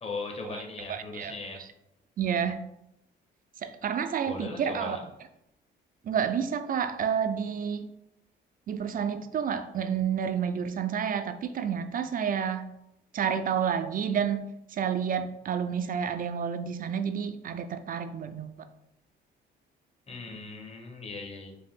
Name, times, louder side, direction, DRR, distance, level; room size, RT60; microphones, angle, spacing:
voice 1, 0.0-1.6 4.3-5.0 20.1-21.6, left 3 dB, 30° left, 2 dB, 1.0 m, -38 dB
voice 2, 0.9-1.3 2.2-2.6 3.6-5.0 6.0-7.9 8.7-12.7 13.1-18.6, right 7 dB, 45° right, 10 dB, 0.4 m, -30 dB
4.8 x 2.6 x 3.6 m, 0.84 s
cardioid pair, 90°, 20 cm